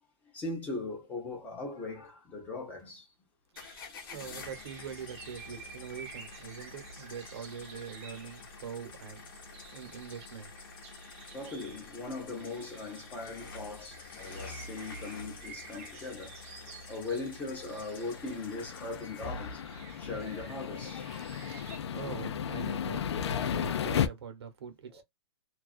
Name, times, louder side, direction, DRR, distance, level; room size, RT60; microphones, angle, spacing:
voice 1, 0.3-3.1 11.3-19.6 20.0-21.1 21.5-21.7 24.9-25.0, left 3 dB, 10° left, 0.6 m, -40 dB
sound 1, 3.5-19.5, left 4 dB, 55° left, 0.8 m, -48 dB
sound 2, 3.5-21.8, right 6 dB, 30° right, 0.5 m, -52 dB
voice 2, 4.1-9.3 9.7-10.5 21.6-25.0, right 7 dB, 70° right, 1.0 m, -44 dB
sound 3, 17.8-24.1, left 8 dB, 85° left, 0.5 m, -34 dB
2.4 x 2.2 x 2.3 m
hypercardioid pair, 170°, 14 cm